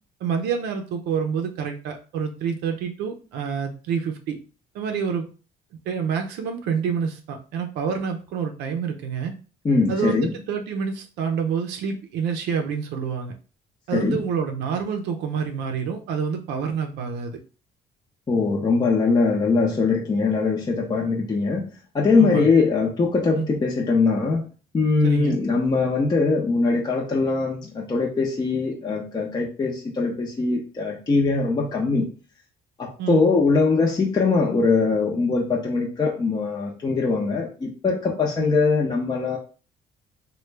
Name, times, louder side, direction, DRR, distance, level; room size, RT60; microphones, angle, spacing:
voice 1, 0.2-4.4 4.7-5.3 5.9-9.3 9.9-13.3 13.9-17.4 22.2-22.5 23.4-23.5 25.0-25.4 33.0-33.3 38.4-38.6, right 6 dB, 85° right, 4 dB, 0.5 m, -27 dB
voice 2, 9.6-10.3 13.9-14.2 18.3-21.7 21.9-32.1 32.8-39.4, left 4 dB, 25° left, -1 dB, 0.6 m, -22 dB
3.2 x 2.2 x 3.2 m, 0.36 s
cardioid pair, 110°, 17 cm